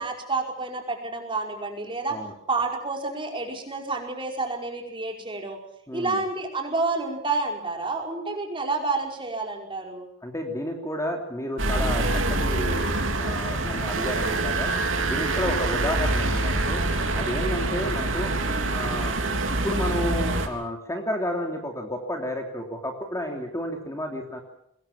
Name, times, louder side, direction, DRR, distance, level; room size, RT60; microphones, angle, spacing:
voice 1, 0.0-2.2 2.5-5.6 5.9-10.1 15.2-15.5 18.5-18.7, right 3 dB, 25° right, 2 dB, 5.1 m, -29 dB
voice 2, 5.9-6.2 10.2-14.7 15.1-16.8 17.1-18.3 18.7-19.1 19.5-24.4, left 1 dB, 15° left, 2 dB, 3.1 m, -31 dB
sound 1, 11.6-20.5, right 2 dB, 70° right, 3.4 m, -25 dB
24.0 x 21.0 x 7.4 m, 0.74 s
head